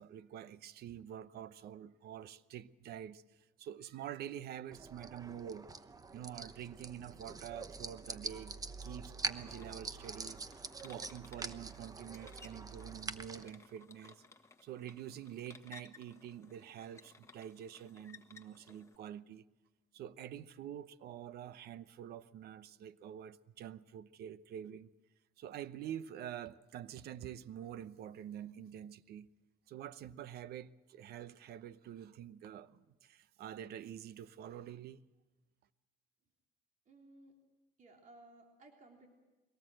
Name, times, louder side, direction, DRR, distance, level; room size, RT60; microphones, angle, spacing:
voice 1, 0.0-3.2 3.6-5.7 6.1-8.6 8.8-14.2 14.6-19.4 19.9-24.9 25.4-29.3 29.7-35.0, right 10 dB, 70° right, 0.8 m, -47 dB
sound 1, 4.7-13.4, right 4 dB, 20° right, 0.9 m, -45 dB
sound 2, 9.5-19.0, left 4 dB, 15° left, 1.4 m, -59 dB
voice 2, 36.9-37.3 37.8-39.1, right 2 dB, 50° right, 3.4 m, -59 dB
23.0 x 18.0 x 7.8 m
cardioid pair, 110°, 17 cm